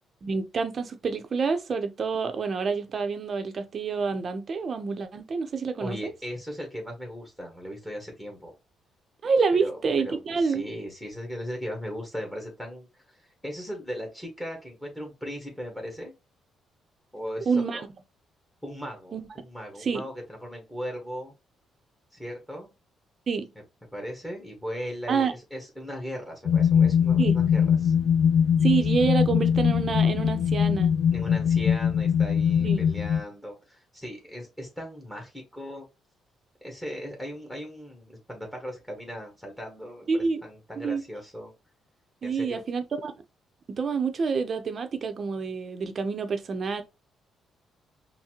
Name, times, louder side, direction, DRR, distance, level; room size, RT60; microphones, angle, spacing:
voice 1, 0.2-6.1 9.2-10.7 17.5-17.8 19.1-19.3 19.8-20.1 23.3-23.5 25.1-25.3 27.2-27.4 28.6-30.9 32.6-32.8 40.1-40.4 40.8-41.0 42.2-43.1 43.7-46.8, right 5 dB, 45° right, 0.7 m, -27 dB
voice 2, 5.8-8.5 9.6-13.2 13.4-16.1 17.1-17.8 18.6-21.3 22.1-22.7 23.9-27.9 31.1-35.9 36.6-41.5 42.2-42.6, equal, 10° left, 1.5 m, -38 dB
sound 1, 26.5-33.2, left 8 dB, 70° left, 0.3 m, -22 dB
5.6 x 2.1 x 2.9 m
cardioid pair, 90°, 0 cm